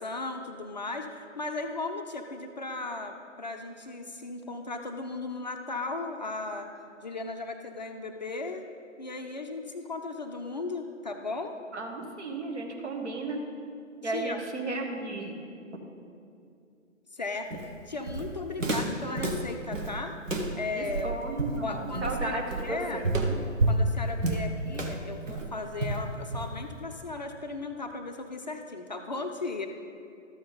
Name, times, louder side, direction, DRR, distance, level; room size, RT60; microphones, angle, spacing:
voice 1, 0.0-6.7 7.0-8.6 9.0-11.6 14.0-14.4 17.1-20.2 20.5-21.2 21.6-23.0 23.7-29.7, left 3 dB, 35° left, 5 dB, 0.5 m, -36 dB
voice 2, 11.7-13.4 14.0-15.4 20.7-23.4, right 2 dB, 60° right, 1 dB, 1.6 m, -34 dB
Walk footsteps, 17.5-26.8, right 2 dB, 80° right, 1.1 m, -30 dB
13.0 x 7.4 x 3.9 m, 2.5 s
figure-of-eight pair, 135°, 39 cm